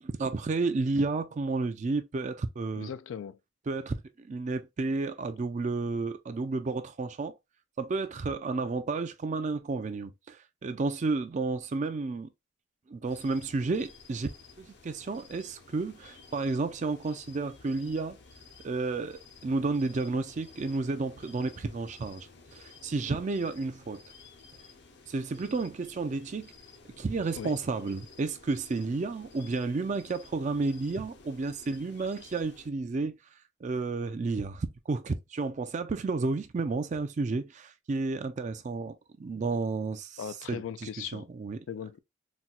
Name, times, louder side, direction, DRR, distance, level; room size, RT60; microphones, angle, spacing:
voice 1, 0.0-2.9 3.7-7.3 7.8-12.3 12.9-14.3 14.6-18.2 18.6-24.0 25.1-26.5 27.0-33.2 33.6-40.2 40.5-41.6, right 3 dB, 40° right, 0.4 m, -31 dB
voice 2, 2.7-3.4 27.3-27.6 40.2-41.3 41.7-42.0, left 8 dB, 80° left, 0.3 m, -38 dB
sound 1, 13.0-32.7, left 4 dB, 60° left, 0.7 m, -53 dB
4.1 x 2.2 x 2.3 m
head